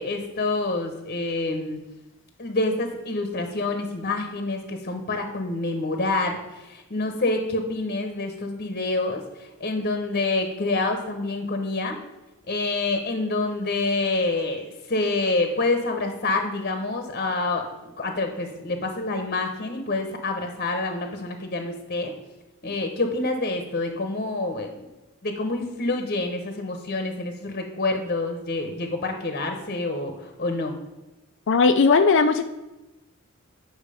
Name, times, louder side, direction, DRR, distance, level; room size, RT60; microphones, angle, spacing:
voice 1, 0.0-1.8 2.4-12.0 12.5-22.1 22.6-24.9 25.2-30.7, left 2 dB, 40° left, 5 dB, 1.0 m, -27 dB
voice 2, 31.5-32.4, left 4 dB, 60° left, 7 dB, 0.4 m, -17 dB
8.9 x 6.0 x 5.0 m, 1.1 s
head